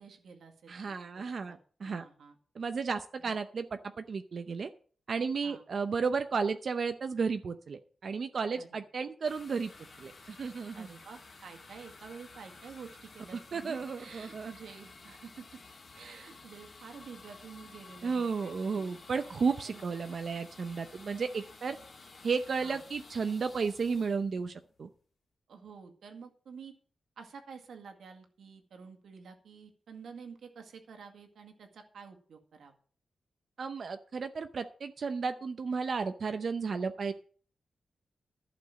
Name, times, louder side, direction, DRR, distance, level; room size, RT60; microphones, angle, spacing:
voice 1, 0.0-2.4 3.2-3.3 5.4-5.6 8.5-8.8 10.7-15.6 16.0-19.4 19.7-19.8 22.6-22.8 25.5-26.8 27.2-32.8, right 5 dB, 80° right, 4 dB, 2.0 m, -50 dB
voice 2, 0.7-2.0 2.5-4.7 5.1-9.7 10.0-10.9 13.5-14.5 18.0-21.8 22.2-24.9 33.6-37.1, right 5 dB, 50° right, 9 dB, 0.7 m, -33 dB
sound 1, 9.2-25.0, left 3 dB, 40° left, 2.3 m, -53 dB
11.5 x 6.1 x 7.5 m, 0.43 s
wide cardioid pair, 145°, 0 cm